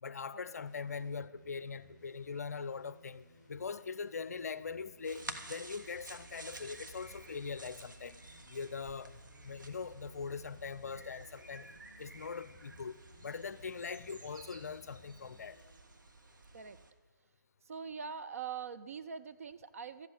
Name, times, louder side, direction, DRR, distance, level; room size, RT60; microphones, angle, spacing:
voice 1, 0.0-8.2 8.5-9.2 9.4-11.7 12.0-13.0 13.2-15.6, left 5 dB, 50° left, 0.6 m, -42 dB
sound 1, 0.6-15.7, left 2 dB, 5° left, 4.2 m, -62 dB
sound 2, 5.0-16.9, right 2 dB, 70° right, 1.6 m, -51 dB
voice 2, 17.7-20.1, right 6 dB, 45° right, 0.7 m, -43 dB
13.5 x 8.2 x 9.0 m
figure-of-eight pair, 155°, 11 cm